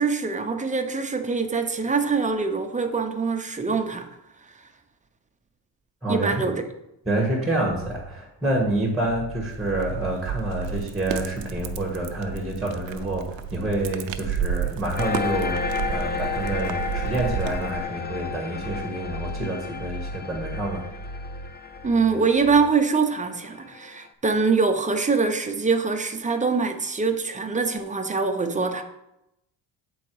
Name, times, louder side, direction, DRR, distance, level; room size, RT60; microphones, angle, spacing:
voice 1, 0.0-4.1 6.1-6.6 21.8-28.8, right 4 dB, 15° right, 5 dB, 0.7 m, -24 dB
voice 2, 7.0-20.8, right 1 dB, ahead, -1 dB, 1.4 m, -28 dB
sound 1, 8.9-22.6, right 1 dB, 65° left, 2.3 m, -38 dB
sound 2, 9.5-17.8, right 9 dB, 90° right, 0.7 m, -32 dB
sound 3, 15.0-24.0, left 6 dB, 25° left, 0.4 m, -33 dB
8.3 x 3.9 x 4.6 m, 0.85 s
cardioid pair, 110°, 44 cm